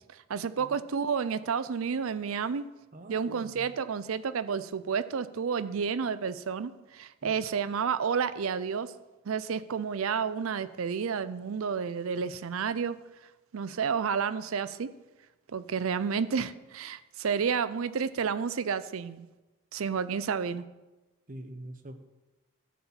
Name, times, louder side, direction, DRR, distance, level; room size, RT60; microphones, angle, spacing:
voice 1, 0.3-2.7 3.1-8.9 9.3-13.0 13.5-14.9 15.5-19.3 19.7-20.6, right 6 dB, 70° right, 14 dB, 0.5 m, -30 dB
voice 2, 2.9-3.7 7.2-7.3 21.3-21.9, right 1 dB, 40° right, 7 dB, 0.9 m, -45 dB
12.5 x 4.3 x 7.2 m, 1.1 s
head